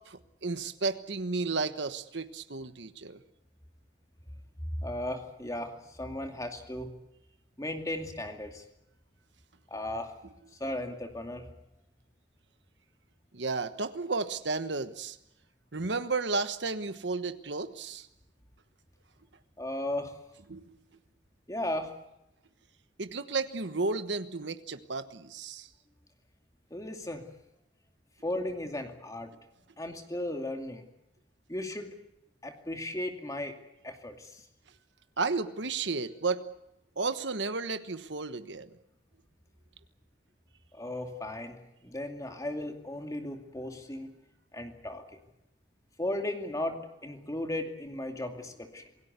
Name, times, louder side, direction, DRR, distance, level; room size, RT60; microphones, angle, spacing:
voice 1, 0.1-3.2 13.3-15.2 15.7-18.1 20.5-20.8 23.0-25.7 35.2-36.4 37.0-38.7, right 3 dB, 70° right, 10 dB, 1.2 m, -33 dB
voice 2, 4.8-6.9 7.6-8.6 9.7-10.1 10.6-11.5 19.6-20.2 21.5-21.9 26.7-27.3 28.2-29.3 29.8-30.8 31.5-31.9 32.4-33.6 33.8-34.4 40.7-44.1 44.5-45.0 46.0-48.8, left 1 dB, 20° left, 4 dB, 2.5 m, -36 dB
27.5 x 18.0 x 8.2 m, 0.85 s
head